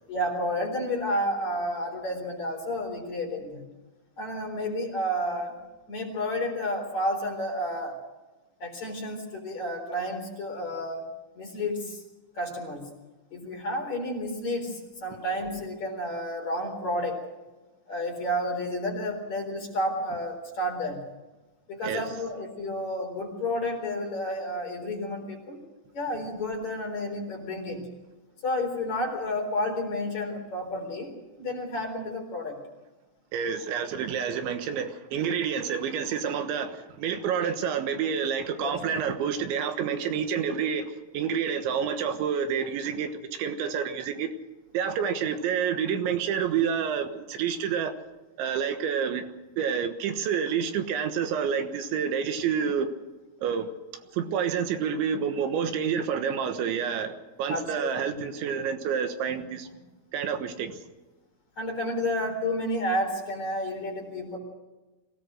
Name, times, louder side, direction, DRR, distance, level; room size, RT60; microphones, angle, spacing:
voice 1, 0.1-3.6 4.2-5.6 5.9-8.0 8.6-11.0 11.3-12.0 12.3-12.9 13.3-17.2 17.9-21.0 21.7-25.6 25.9-27.9 28.4-31.1 31.4-32.6 38.6-38.7 57.5-57.9 61.6-64.4, left 1 dB, 40° left, 5.0 m, -31 dB
voice 2, 33.3-44.3 44.7-47.9 48.4-49.2 49.6-52.9 53.4-53.7 54.1-59.7 60.1-60.8, right 7 dB, 75° right, 3.6 m, -28 dB
24.0 x 17.5 x 6.5 m
omnidirectional pair, 5.5 m